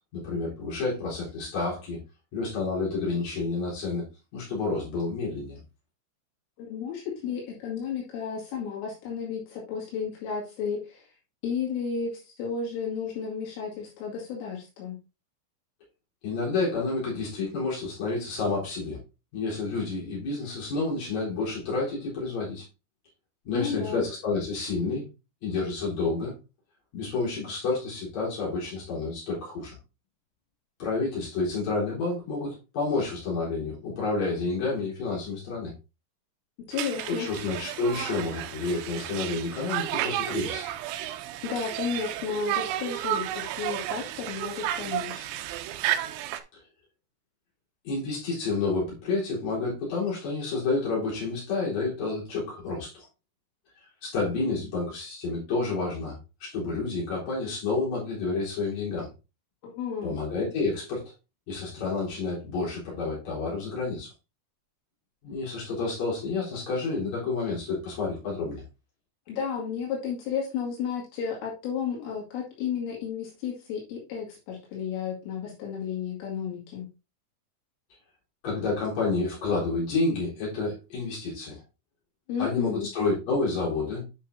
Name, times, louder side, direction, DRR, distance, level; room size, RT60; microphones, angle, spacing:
voice 1, 0.1-2.0 2.3-4.0 4.3-5.6 16.2-19.0 19.3-22.6 23.4-25.1 25.4-26.3 26.9-29.7 30.8-35.7 37.1-40.7 47.8-53.0 54.0-56.1 56.4-59.1 60.0-61.0 61.5-64.1 65.2-68.6 78.4-81.6 82.4-84.1, left 3 dB, 35° left, -5 dB, 4.7 m, -29 dB
voice 2, 6.6-11.1 11.4-15.0 23.5-24.0 36.7-37.3 41.4-45.2 59.6-60.2 69.3-76.9 82.3-82.9, left 6 dB, 75° left, -3 dB, 4.8 m, -33 dB
Conversation, 36.7-46.4, right 12 dB, 85° right, 2.7 m, -32 dB
9.6 x 5.6 x 2.7 m, 0.28 s
omnidirectional pair, 5.8 m